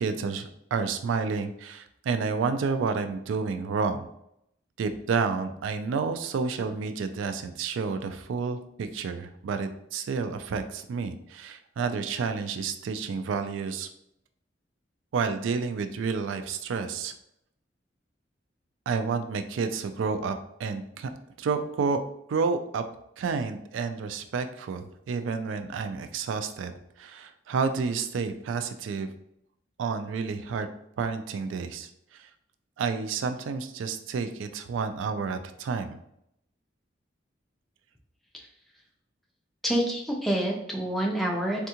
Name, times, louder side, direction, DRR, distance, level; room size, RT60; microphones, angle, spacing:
voice 1, 0.0-4.1 4.8-13.9 15.1-17.1 18.9-21.1 21.4-22.0 22.3-22.8 23.2-26.7 27.0-29.1 29.8-30.7 31.0-31.9 32.2-32.3 32.8-36.0, right 5 dB, 90° right, 9 dB, 0.3 m, -30 dB
voice 2, 39.6-41.7, right 1 dB, ahead, -1 dB, 0.4 m, -27 dB
3.5 x 2.3 x 2.8 m, 0.76 s
head